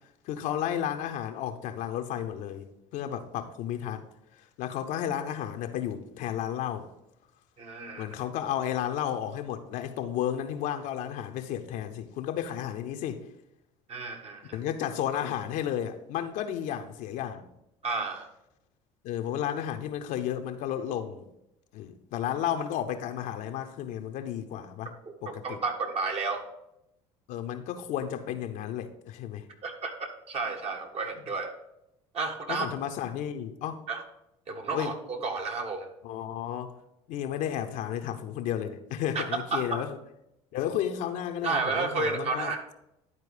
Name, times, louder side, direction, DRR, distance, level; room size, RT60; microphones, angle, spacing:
voice 1, 0.3-4.1 4.6-6.9 8.0-13.3 14.5-17.5 19.0-21.3 21.7-24.9 25.2-25.6 27.3-29.5 32.5-33.8 34.7-34.9 36.0-36.8 37.1-40.0 40.5-42.5, left 10 dB, 65° left, 0.8 m, -33 dB
voice 2, 7.6-8.1 13.9-14.6 17.8-18.3 25.2-26.5 29.6-31.5 32.1-32.7 33.9-34.0 34.5-35.9 39.1-39.8 41.4-42.6, right 4 dB, 45° right, 1.6 m, -31 dB
11.0 x 4.5 x 4.9 m
hypercardioid pair, 75°, 14 cm